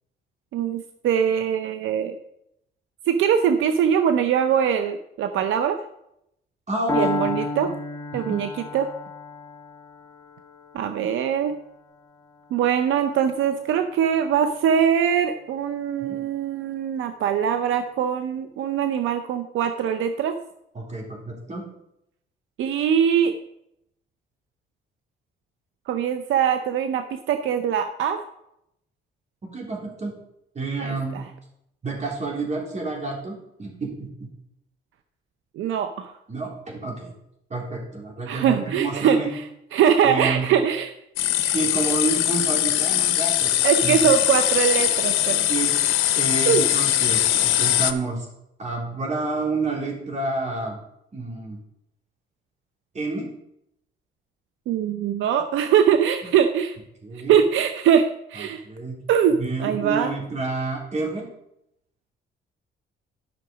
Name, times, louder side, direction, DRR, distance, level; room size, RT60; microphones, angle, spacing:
voice 1, 0.5-2.2 3.1-5.8 6.9-7.7 8.1-8.9 10.7-11.5 12.5-20.3 22.6-23.3 25.9-28.2 30.8-31.2 35.6-36.1 38.3-39.4 39.7-40.9 41.4-41.6 43.6-45.5 46.5-46.7 54.7-56.8 57.3-58.0 58.3-58.6 59.1-60.1, right 8 dB, 80° right, 8 dB, 0.7 m, -22 dB
voice 2, 6.7-7.3 7.6-7.7 8.1-8.4 16.0-16.3 20.7-21.6 29.5-30.1 30.6-31.2 31.8-33.3 33.6-34.3 36.3-37.1 37.5-39.3 40.0-40.5 41.4-43.5 43.8-44.0 45.5-45.7 46.2-48.3 48.6-50.8 51.1-51.6 52.9-53.3 56.2-56.3 57.0-57.4 58.4-59.0 59.3-61.2, right 3 dB, 35° right, -1 dB, 3.6 m, -29 dB
Piano, 6.9-14.8, left 3 dB, 20° left, 1.0 m, -33 dB
sound 1, 41.2-47.9, left 12 dB, 90° left, 0.7 m, -21 dB
11.0 x 5.9 x 5.2 m, 0.78 s
cardioid pair, 90°, 20 cm